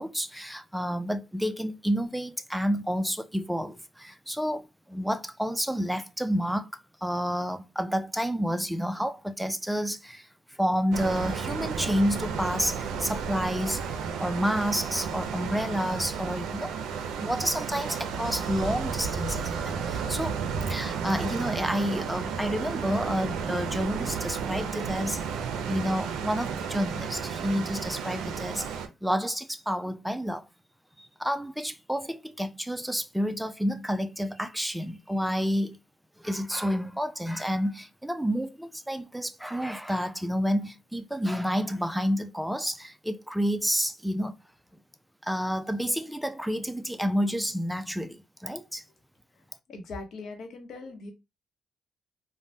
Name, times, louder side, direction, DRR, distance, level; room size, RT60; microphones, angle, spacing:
voice 1, 0.0-6.7 7.0-10.3 10.6-16.7 17.2-20.4 20.7-25.2 25.6-30.5 31.0-35.8 36.2-44.3 45.2-48.8, equal, 5° right, 0.4 m, -29 dB
sound 1, 10.9-28.9, right 6 dB, 85° right, 0.4 m, -32 dB
voice 2, 49.7-51.1, left 3 dB, 65° left, 0.8 m, -40 dB
3.2 x 2.1 x 2.6 m
cardioid pair, 90°, 0 cm